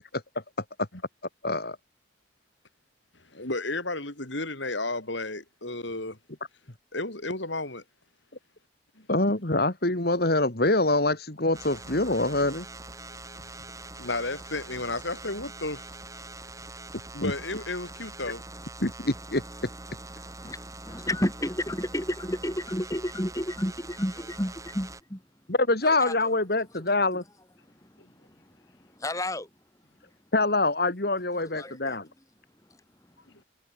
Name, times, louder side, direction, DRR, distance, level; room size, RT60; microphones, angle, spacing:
voice 1, 1.4-1.8 9.1-12.7 17.2-17.3 18.8-19.4 25.5-27.2 30.3-32.1, left 2 dB, 50° left, 2.3 m, -25 dB
voice 2, 3.3-6.2 6.9-7.8 9.0-9.1 13.9-15.9 17.1-18.4 28.0-28.1, left 2 dB, 65° left, 5.2 m, -33 dB
sound 1, 11.5-25.0, right 2 dB, 15° right, 6.9 m, -43 dB
voice 3, 20.8-25.2 25.8-26.1 29.0-29.5 31.6-32.0, left 1 dB, 15° left, 3.4 m, -31 dB
head